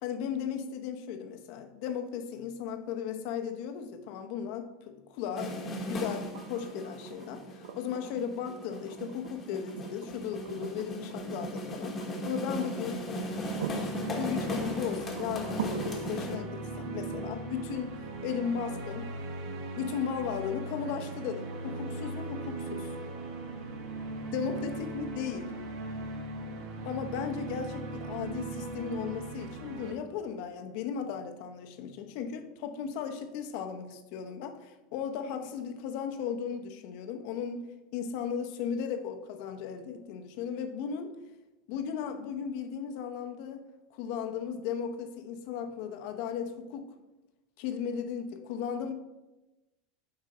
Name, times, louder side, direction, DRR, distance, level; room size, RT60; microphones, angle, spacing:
voice 1, 0.0-4.7 5.2-12.0 12.2-13.1 13.8-19.1 19.8-22.9 24.3-25.5 26.8-41.1 41.7-46.9 47.6-48.9, left 7 dB, 65° left, 0.8 m, -36 dB
sound 1, 5.4-16.4, left 1 dB, 25° left, 1.3 m, -37 dB
sound 2, 6.3-20.3 22.0-22.1, right 9 dB, 85° right, 0.6 m, -45 dB
sound 3, 12.9-29.9, right 3 dB, 65° right, 1.2 m, -39 dB
7.8 x 5.2 x 4.2 m
supercardioid pair, 125°, 0 cm